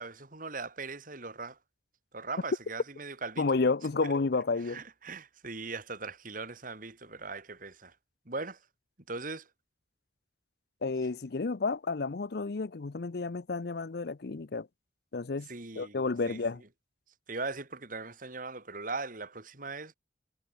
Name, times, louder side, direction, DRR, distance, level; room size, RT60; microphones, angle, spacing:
voice 1, 0.0-1.6 2.1-3.4 4.0-4.1 4.6-7.9 8.3-8.6 9.1-9.5 15.5-15.9 16.2-16.7 17.3-19.9, right 3 dB, 45° right, 2.8 m, -39 dB
voice 2, 3.4-4.8 10.8-14.7 15.1-15.5 15.8-16.6, left 4 dB, 60° left, 0.6 m, -31 dB
head